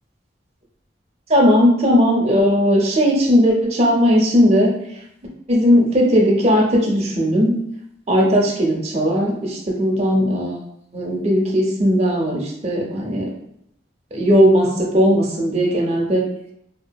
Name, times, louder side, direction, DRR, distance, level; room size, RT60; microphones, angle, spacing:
voice 1, 1.3-4.7 5.5-7.5 8.1-10.6 10.9-13.3 14.1-16.3, equal, 35° right, -2 dB, 0.5 m, -17 dB
2.6 x 2.3 x 2.2 m, 0.74 s
head